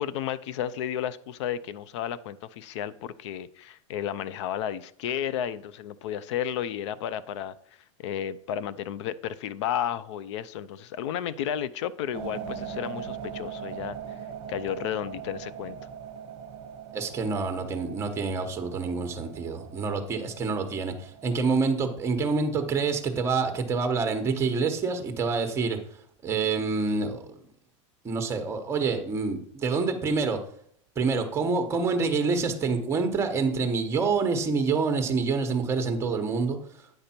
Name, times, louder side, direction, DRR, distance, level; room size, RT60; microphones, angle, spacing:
voice 1, 0.0-7.5 8.0-14.0 14.5-15.8, left 10 dB, 65° left, 17 dB, 0.5 m, -32 dB
sound 1, 12.1-23.9, right 8 dB, 35° right, 1.1 m, -41 dB
voice 2, 16.9-25.8 26.2-27.2 28.0-30.4 31.0-36.6, right 4 dB, 15° right, 6 dB, 1.0 m, -27 dB
9.3 x 5.1 x 4.4 m, 0.66 s
supercardioid pair, 150°, 16 cm